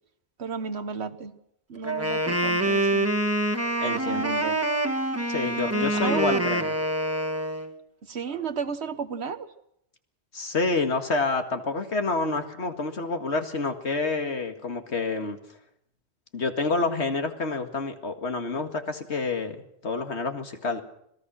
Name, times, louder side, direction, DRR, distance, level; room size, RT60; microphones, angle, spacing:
voice 1, 0.4-1.3 1.7-3.1 3.8-4.6 5.7-6.6 8.0-9.5, right 5 dB, 75° right, 10 dB, 1.6 m, -33 dB
Wind instrument woodwind instrument, 1.8-7.7, right 1 dB, 15° right, 1.6 m, -26 dB
voice 2, 3.8-4.4 5.3-6.7 10.3-15.4 16.3-19.6 19.8-20.8, left 3 dB, 85° left, 6 dB, 2.2 m, -28 dB
26.0 x 18.5 x 6.3 m, 0.75 s
omnidirectional pair, 1.1 m